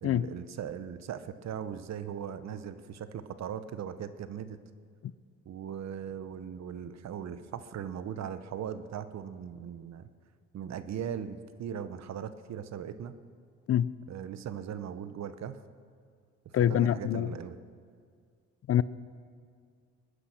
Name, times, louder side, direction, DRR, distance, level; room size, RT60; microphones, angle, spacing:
voice 1, 0.0-4.6 5.5-10.1 10.5-13.1 14.1-15.6 16.4-17.6, right 8 dB, 60° right, 12 dB, 0.9 m, -39 dB
voice 2, 16.5-17.3 18.7-18.8, left 11 dB, 50° left, 18 dB, 0.5 m, -25 dB
21.5 x 9.9 x 6.5 m, 2.1 s
cardioid pair, 90°, 30 cm